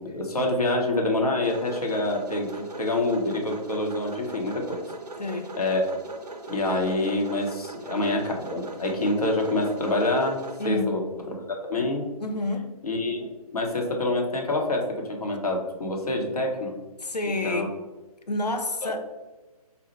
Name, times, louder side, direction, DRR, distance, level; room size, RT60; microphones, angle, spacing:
voice 1, 0.0-4.8 5.6-5.8 6.5-11.0 11.7-12.0 12.8-16.7 17.4-17.7 18.8-18.9, left 2 dB, 70° left, 1 dB, 0.9 m, -26 dB
sound 1, 1.4-10.7, right 2 dB, 80° right, 0.5 m, -40 dB
voice 2, 5.2-5.5 10.6-10.9 12.2-12.7 17.0-17.7 18.3-19.0, left 2 dB, 90° left, 6 dB, 0.6 m, -29 dB
4.0 x 2.1 x 4.3 m, 1.2 s
figure-of-eight pair, 140°, 20 cm